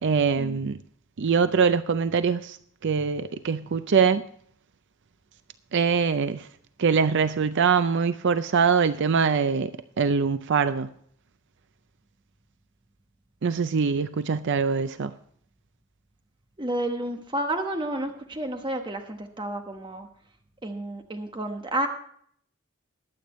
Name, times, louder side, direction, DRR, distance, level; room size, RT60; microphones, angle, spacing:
voice 1, 0.0-0.8 1.2-2.6 2.8-4.2 5.7-6.5 6.8-10.9 13.4-15.1, right 6 dB, 55° right, 0.5 m, -23 dB
voice 2, 16.6-20.1 20.6-21.9, right 1 dB, 20° right, 1.1 m, -30 dB
21.5 x 8.4 x 3.1 m
head